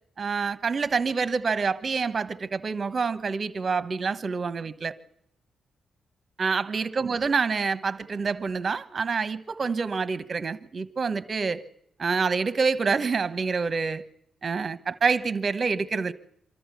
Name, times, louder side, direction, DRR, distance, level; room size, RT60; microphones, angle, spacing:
voice 1, 0.2-4.9 6.4-11.6 12.0-14.0 14.4-16.1, right 5 dB, 40° right, 1.1 m, -27 dB
24.5 x 13.5 x 8.3 m
cardioid pair, 115°, 0 cm